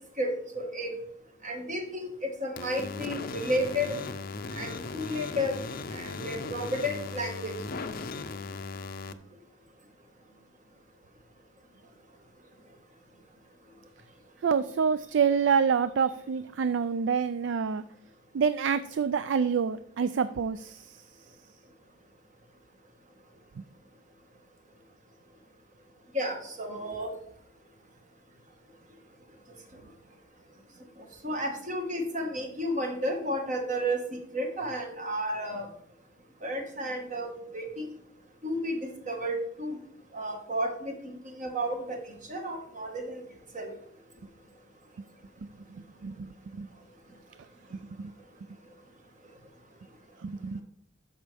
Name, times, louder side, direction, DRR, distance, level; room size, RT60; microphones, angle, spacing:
voice 1, 0.2-0.9 1.4-4.0 4.5-5.6 5.9-7.5 26.1-27.1 31.2-34.0 34.3-35.7 36.4-38.0 38.4-38.8 39.1-39.8 40.1-40.9 41.2-42.0 42.3-43.2 43.5-43.7, equal, 40° right, 3 dB, 1.6 m, -32 dB
sound 1, 2.6-9.1, left 4 dB, 45° left, 0.5 m, -37 dB
voice 2, 14.4-17.8 18.3-20.9 23.6-23.7 46.0-46.7 48.0-48.1 50.2-50.6, right 6 dB, 65° right, 13 dB, 0.3 m, -27 dB
13.0 x 5.4 x 3.4 m, 0.67 s
head